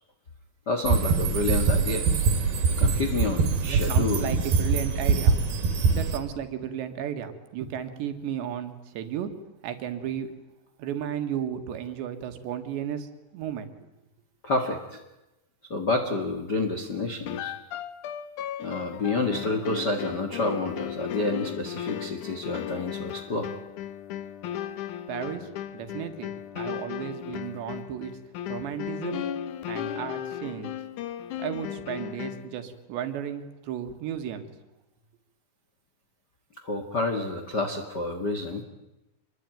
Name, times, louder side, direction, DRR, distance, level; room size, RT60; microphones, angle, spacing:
voice 1, 0.7-2.1 2.8-4.3 14.4-15.0 15.7-17.5 18.6-23.5 36.6-38.6, left 2 dB, 50° left, 4 dB, 1.3 m, -29 dB
sound 1, 0.9-6.2, right 4 dB, 60° right, 3.7 m, -23 dB
voice 2, 3.6-5.4 5.9-9.3 9.6-10.3 10.8-13.7 25.1-28.1 28.5-29.3 29.7-30.8 31.4-34.5, right 9 dB, 75° right, 8 dB, 3.9 m, -34 dB
sound 2, 17.3-32.6, left 10 dB, 90° left, 1.7 m, -36 dB
27.0 x 21.5 x 9.2 m, 0.97 s
omnidirectional pair, 5.1 m